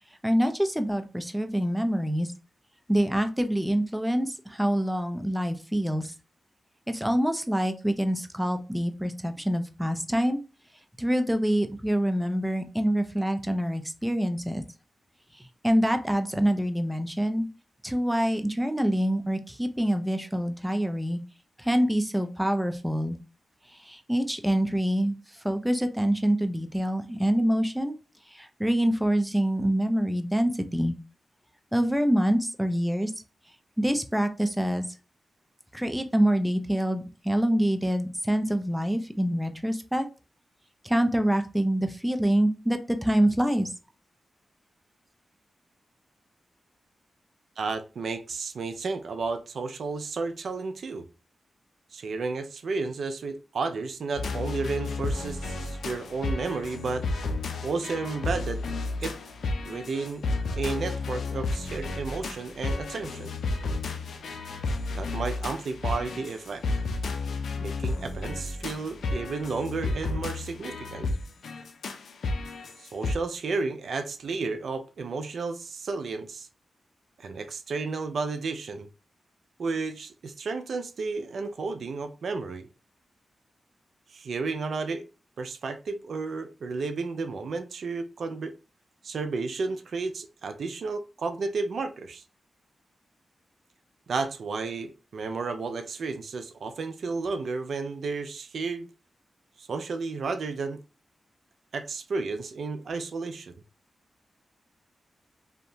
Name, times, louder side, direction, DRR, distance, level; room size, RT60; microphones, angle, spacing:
voice 1, 0.2-2.3 2.9-6.1 6.9-10.4 11.0-14.6 15.4-17.5 17.8-21.2 21.6-23.2 23.8-25.1 25.4-27.9 28.3-30.9 31.7-33.1 33.8-34.8 35.7-40.1 40.8-43.7, equal, 5° right, 0.5 m, -26 dB
voice 2, 47.6-51.1 51.9-57.1 57.6-58.6 59.0-59.2 59.7-60.2 60.6-63.3 64.9-66.6 67.6-71.1 72.8-76.5 77.2-78.9 79.6-82.7 84.1-85.0 85.4-88.5 89.0-92.2 94.1-98.9 99.6-100.8 101.7-103.6, right 4 dB, 75° right, 0.3 m, -32 dB
sound 1, 54.2-73.1, left 3 dB, 80° left, 0.4 m, -32 dB
2.7 x 2.2 x 2.6 m
cardioid pair, 45°, 0 cm